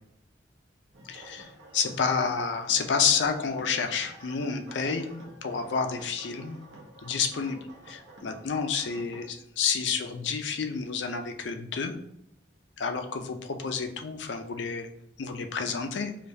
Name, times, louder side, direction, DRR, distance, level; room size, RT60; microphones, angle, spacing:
sound 1, 0.9-9.3, right 1 dB, 85° right, 0.9 m, -50 dB
voice 1, 1.1-5.1 5.4-6.6 7.0-7.6 7.9-12.0 12.8-14.9 15.2-16.1, left 6 dB, 80° left, 6 dB, 0.5 m, -29 dB
5.0 x 2.3 x 2.7 m, 0.75 s
head